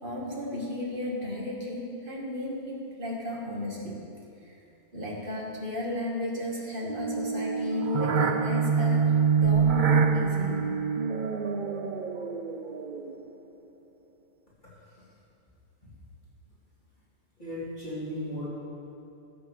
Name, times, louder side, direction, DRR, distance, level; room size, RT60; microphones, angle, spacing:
voice 1, 0.0-4.0 4.4-4.6 4.9-10.8, left 2 dB, 35° right, -3 dB, 2.3 m, -34 dB
sound 1, 6.9-13.3, right 6 dB, 55° right, 0.5 m, -26 dB
voice 2, 14.6-15.0 17.4-18.5, left 1 dB, 30° left, -9 dB, 2.9 m, -36 dB
14.5 x 7.9 x 6.6 m, 2.6 s
omnidirectional pair, 1.6 m